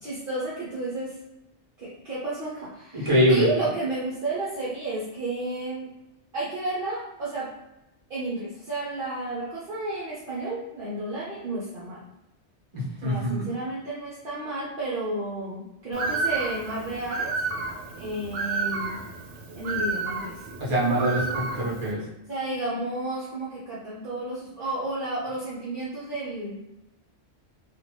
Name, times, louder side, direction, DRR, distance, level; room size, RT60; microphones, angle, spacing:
voice 1, 0.0-1.2 1.8-5.9 6.3-7.5 8.1-12.0 13.0-17.4 17.9-19.0 19.6-20.5 22.3-26.6, right 2 dB, 55° right, -8 dB, 0.9 m, -32 dB
voice 2, 2.9-3.5 12.7-13.5 20.6-22.0, equal, 25° right, -8 dB, 1.2 m, -23 dB
Bird, 15.9-21.9, right 3 dB, 90° right, 0.9 m, -31 dB
2.8 x 2.4 x 3.2 m, 0.94 s
omnidirectional pair, 1.2 m